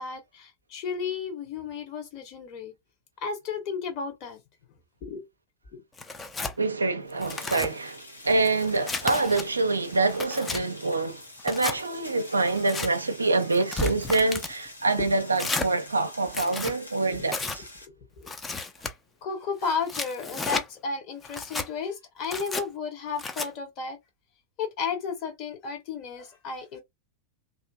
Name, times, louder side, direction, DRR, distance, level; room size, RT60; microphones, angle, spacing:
voice 1, 0.0-2.7 3.2-4.4 5.0-5.2 5.7-5.8 18.2-18.3 19.2-24.0 24.6-26.8, left 5 dB, 40° left, 1.0 m, -33 dB
Tearing, 6.0-6.6 7.1-7.7 8.3-9.4 9.9-10.6 11.4-11.8 12.5-12.9 13.5-14.5 15.4-15.7 16.3-16.7 17.3-17.6 18.3-18.9 19.6-20.7 21.2-21.7 22.2-22.6 23.2-23.5, left 3 dB, 15° left, 0.4 m, -33 dB
voice 2, 6.6-17.6, right 3 dB, 80° right, 0.4 m, -26 dB
sound 1, 7.3-17.9, left 1 dB, 85° left, 0.8 m, -46 dB
2.7 x 2.6 x 2.3 m
figure-of-eight pair, 90°, 0 cm